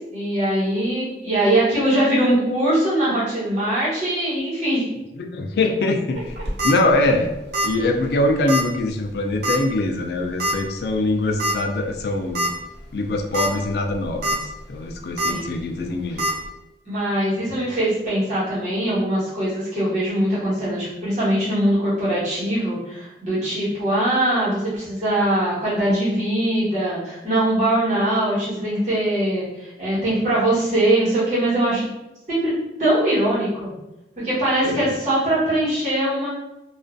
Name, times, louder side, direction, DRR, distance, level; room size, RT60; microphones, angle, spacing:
voice 1, 0.1-4.8 15.2-15.5 16.8-31.9 32.3-32.5 32.8-33.7 34.2-36.3, right 1 dB, 45° right, -11 dB, 1.1 m, -21 dB
voice 2, 5.2-6.3 6.6-7.3 7.6-12.5 12.9-16.3 34.6-34.9, left 2 dB, 65° left, 4 dB, 0.3 m, -23 dB
sound 1, 6.3-6.7 7.5-7.8 8.0-8.1 8.5-8.6 9.4-9.7 10.4-10.5 11.4-11.5 12.0-12.1 12.3-12.5 13.1-13.5 13.9-14.3 15.2-15.3 16.2-16.3, equal, 65° right, 0.7 m, -22 dB
2.4 x 2.2 x 2.5 m, 0.93 s
head